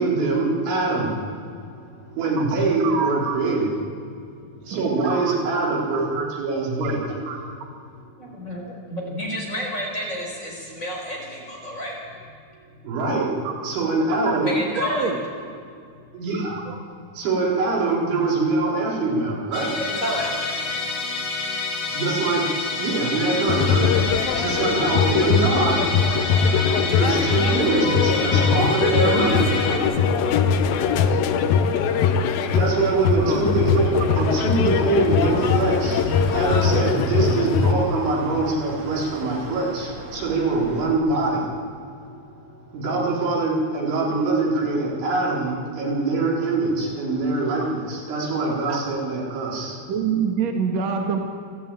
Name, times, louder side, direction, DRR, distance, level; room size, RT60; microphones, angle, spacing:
voice 1, 0.0-3.7 4.1-4.2 4.6-7.2 12.8-14.5 16.1-16.7 17.1-19.8 20.8-21.0 21.9-49.9, right 3 dB, 85° right, -3 dB, 6.2 m, -24 dB
voice 2, 2.8-3.4 4.7-5.6 6.8-6.9 7.3-7.4 14.3-14.4 14.8-15.2 16.7-16.8 33.2-33.4 34.2-34.3 48.5-48.8 49.9-51.2, right 6 dB, 60° right, 2 dB, 1.9 m, -26 dB
voice 3, 8.2-12.0 14.4-15.1 19.8-20.4, equal, 15° left, -2 dB, 4.6 m, -30 dB
Musical instrument, 19.5-29.8, left 3 dB, 45° left, 2.6 m, -28 dB
sound 1, 23.5-37.7, left 6 dB, 70° left, 2.3 m, -21 dB
sound 2, 33.5-40.9, right 1 dB, 40° right, 4.5 m, -40 dB
29.0 x 12.0 x 8.9 m, 2.4 s
omnidirectional pair, 5.2 m